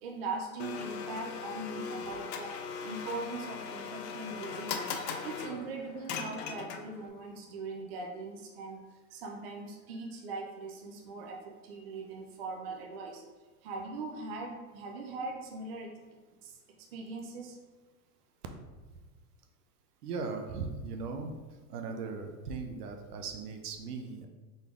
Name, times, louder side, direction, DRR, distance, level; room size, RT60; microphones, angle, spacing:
voice 1, 0.0-2.5 2.8-4.9 5.2-8.8 9.1-13.2 13.6-15.9 16.4-16.5 16.9-17.6, right 3 dB, 40° right, 1 dB, 0.5 m, -40 dB
Domestic sounds home sounds, 0.6-7.1, left 6 dB, 80° left, 0.7 m, -39 dB
voice 2, 20.0-21.3 21.7-24.3, right 4 dB, 70° right, 5 dB, 0.8 m, -38 dB
4.1 x 3.4 x 3.6 m, 1.3 s
supercardioid pair, 165°, 48 cm